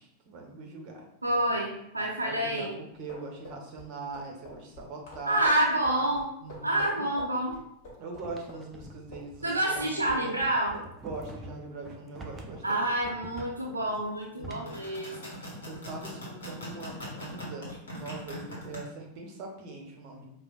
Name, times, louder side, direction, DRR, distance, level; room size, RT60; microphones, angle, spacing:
voice 1, 0.0-1.1 2.2-5.9 6.4-7.1 8.0-10.6 11.0-12.8 14.4-14.8 15.6-20.3, right 3 dB, 40° right, 1 dB, 0.8 m, -42 dB
voice 2, 1.2-2.8 5.3-6.3 6.6-7.5 9.4-10.8 12.6-15.1, right 1 dB, 80° right, -1 dB, 0.4 m, -28 dB
sound 1, 3.0-9.5 9.8-10.9 11.1-11.3, left 1 dB, 45° left, 1.5 m, -46 dB
sound 2, 8.2-14.9, right 2 dB, 15° right, 0.5 m, -46 dB
sound 3, 14.5-18.8, equal, 65° left, 1.1 m, -41 dB
4.9 x 2.4 x 2.4 m, 0.78 s
figure-of-eight pair, 90°, 0 cm